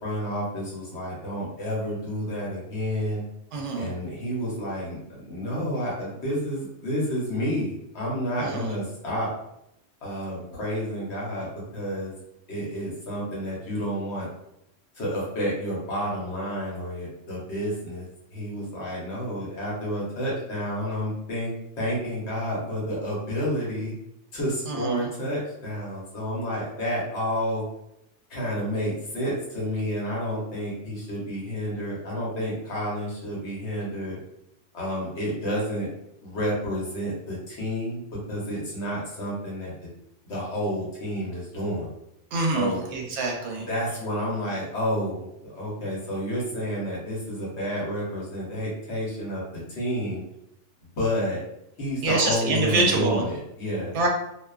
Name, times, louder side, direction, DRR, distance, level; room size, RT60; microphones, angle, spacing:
voice 1, 0.0-3.2 3.8-9.3 10.0-11.5 11.7-12.1 12.5-14.3 15.0-18.0 18.3-21.5 21.8-23.9 24.3-27.6 28.3-34.2 34.7-35.9 36.2-38.0 38.3-39.9 40.3-41.9 42.5-42.8 43.6-45.3 45.5-49.4 49.7-50.2 51.0-51.4 51.8-54.0, equal, 65° left, -5 dB, 1.2 m, -30 dB
voice 2, 3.5-3.9 8.4-8.7 24.7-25.1 42.3-43.7 52.0-53.2 53.9-54.1, right 3 dB, 75° right, 0 dB, 0.8 m, -25 dB
2.4 x 2.2 x 2.3 m, 0.81 s
omnidirectional pair, 1.3 m